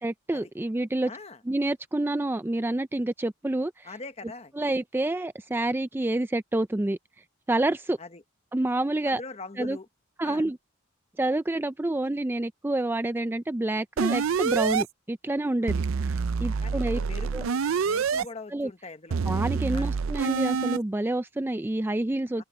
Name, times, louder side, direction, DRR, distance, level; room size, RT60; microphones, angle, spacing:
voice 1, 0.0-1.1 1.5-3.9 4.6-7.0 7.5-8.0 8.5-9.2 9.6-9.8 10.2-10.6 11.2-17.0 17.3-17.4 18.5-18.7 19.3-22.4, right 1 dB, 10° right, 0.3 m, -28 dB
voice 2, 1.0-1.4 3.8-4.5 8.0-8.2 9.1-9.9 10.2-10.5 15.6-15.7 16.6-19.2 19.7-19.9 22.4-22.5, left 3 dB, 30° left, 1.1 m, -42 dB
sound 1, 14.0-14.8 15.7-18.2 19.1-20.8, right 5 dB, 70° right, 0.5 m, -26 dB
open air
head